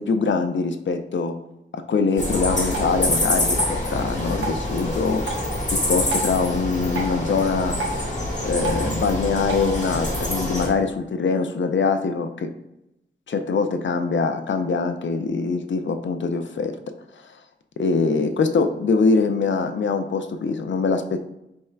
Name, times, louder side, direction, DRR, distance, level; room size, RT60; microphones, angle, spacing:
voice 1, 0.0-1.3 1.7-5.2 5.7-7.8 8.4-12.5 13.3-16.7 17.8-21.2, left 4 dB, 70° left, 7 dB, 0.5 m, -23 dB
sound 1, 2.2-10.7, left 1 dB, 40° left, 1.3 m, -26 dB
Drip, 2.7-9.7, right 2 dB, 85° right, 1.0 m, -35 dB
3.6 x 3.1 x 4.4 m, 0.86 s
wide cardioid pair, 70°, 20 cm